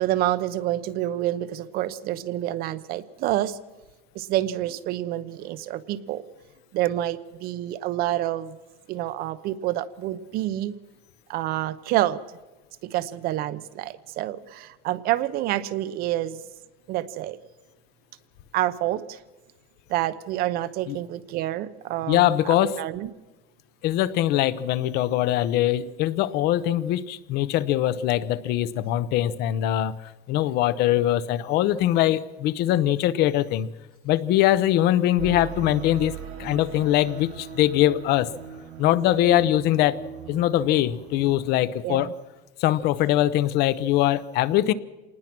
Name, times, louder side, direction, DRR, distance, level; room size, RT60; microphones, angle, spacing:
voice 1, 0.0-3.6 4.1-6.2 6.7-8.6 8.9-10.7 11.3-12.2 12.8-16.4 16.9-17.4 18.5-19.2 19.9-23.1 41.8-42.1, right 14 dB, 50° right, 14 dB, 0.9 m, -28 dB
voice 2, 22.1-22.7 23.8-29.9 30.3-33.7 34.0-38.3 38.8-40.0 40.3-42.1 42.6-44.7, left 13 dB, 55° left, 16 dB, 0.8 m, -22 dB
sound 1, 35.2-41.4, right 7 dB, 85° right, 5.2 m, -39 dB
26.5 x 19.5 x 6.1 m, 1.1 s
cardioid pair, 175°, 20 cm